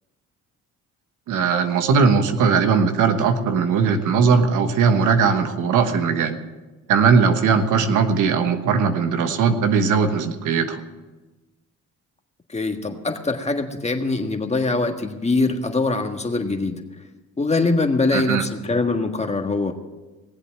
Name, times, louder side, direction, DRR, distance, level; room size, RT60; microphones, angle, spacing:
voice 1, 1.3-6.4 6.9-10.8 18.1-18.4, right 5 dB, 85° right, 7 dB, 1.3 m, -19 dB
voice 2, 12.5-16.8 17.4-19.7, left 3 dB, 20° left, 5 dB, 1.6 m, -23 dB
18.5 x 8.1 x 7.6 m, 1.2 s
cardioid pair, 90°, 30 cm